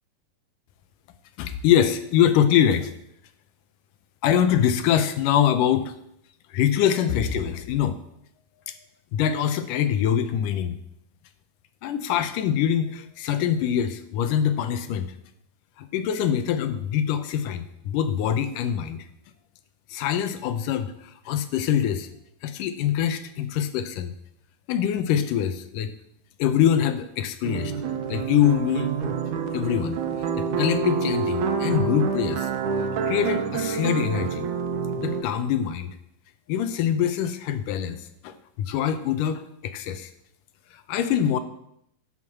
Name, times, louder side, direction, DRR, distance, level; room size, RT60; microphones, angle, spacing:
voice 1, 1.4-2.9 4.2-5.9 6.5-8.0 8.7-8.8 9.1-10.8 11.8-15.1 15.8-19.1 19.9-22.1 22.4-24.1 24.7-25.9 26.4-27.7 28.1-29.2 29.5-30.0 30.4-32.5 33.0-34.5 35.0-36.0 36.5-40.1 40.7-41.4, left 9 dB, 75° left, 10 dB, 2.1 m, -24 dB
sound 1, 27.4-35.2, right 6 dB, 65° right, 2.3 m, -27 dB
11.0 x 6.2 x 7.2 m, 0.75 s
omnidirectional pair, 4.2 m